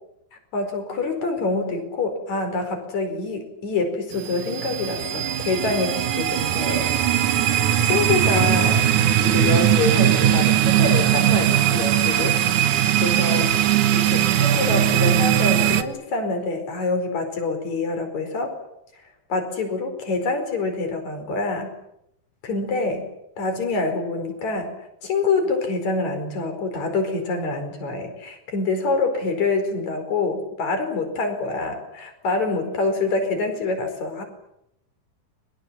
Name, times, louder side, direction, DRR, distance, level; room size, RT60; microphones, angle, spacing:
voice 1, 0.3-6.9 7.3-7.6 7.8-8.9 9.2-12.4 13.0-13.5 13.9-18.6 19.3-21.8 22.4-24.7 25.0-34.2, left 3 dB, 50° left, 7 dB, 6.0 m, -26 dB
sound 1, 4.1-15.8, right 11 dB, 65° right, 2.5 m, -20 dB
30.0 x 23.5 x 7.6 m, 0.81 s
omnidirectional pair, 4.4 m